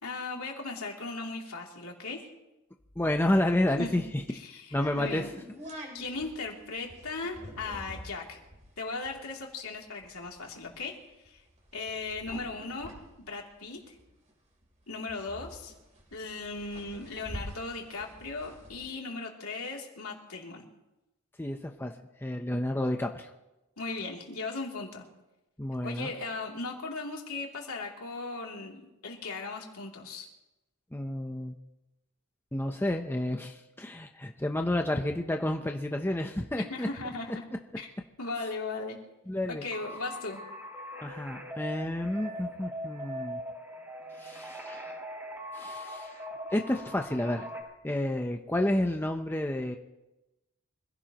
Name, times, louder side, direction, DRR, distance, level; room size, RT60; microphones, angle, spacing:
voice 1, 0.0-2.3 3.8-4.0 4.4-5.3 5.9-8.4 8.8-11.0 11.2-11.4 11.7-13.9 14.9-15.7 16.1-20.6 23.8-25.0 25.8-30.3 36.7-37.5 37.8-37.9 38.2-39.0 39.5-40.4, left 3 dB, 80° left, -1 dB, 3.1 m, -37 dB
voice 2, 3.0-4.2 4.7-5.3 21.4-23.3 25.6-26.1 30.9-31.6 32.5-36.9 39.3-39.6 41.0-43.4 44.2-44.9 45.5-46.2 46.5-47.5 47.8-49.8, left 1 dB, 10° left, 3 dB, 0.8 m, -30 dB
sound 1, 4.8-14.3 14.6-14.7 14.9-18.8, equal, 35° right, 4.0 m, -46 dB
sound 2, 39.7-47.6, equal, 10° right, 4.7 m, -41 dB
25.5 x 16.5 x 3.1 m, 0.96 s
head